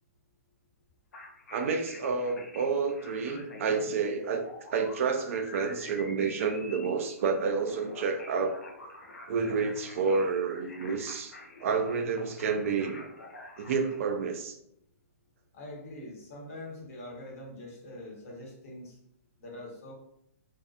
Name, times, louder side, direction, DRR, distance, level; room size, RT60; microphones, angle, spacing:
sound 1, 1.1-14.0, left 2 dB, 85° left, 0.6 m, -47 dB
voice 1, 1.5-8.6 9.3-11.3 11.6-13.0 13.6-14.6, right 5 dB, 60° right, 5 dB, 0.4 m, -29 dB
voice 2, 15.5-19.0 19.4-19.9, left 1 dB, 60° left, -2 dB, 1.0 m, -44 dB
2.6 x 2.1 x 2.4 m, 0.74 s
hypercardioid pair, 130°, 8 cm